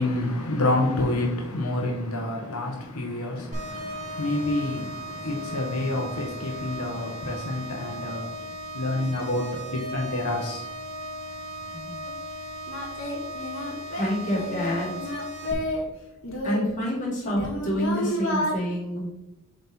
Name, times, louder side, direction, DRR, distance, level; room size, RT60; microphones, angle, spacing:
voice 1, 0.0-8.3 8.7-10.7, left 2 dB, 85° left, 1.2 m, -28 dB
sound 1, 3.5-15.5, equal, 35° right, 1.7 m, -37 dB
Singing, 12.1-12.2 12.7-15.9 16.2-18.5, left 1 dB, 65° left, 1.5 m, -31 dB
voice 2, 14.0-15.1 16.4-19.1, equal, 35° left, 2.6 m, -28 dB
7.6 x 4.1 x 4.4 m
head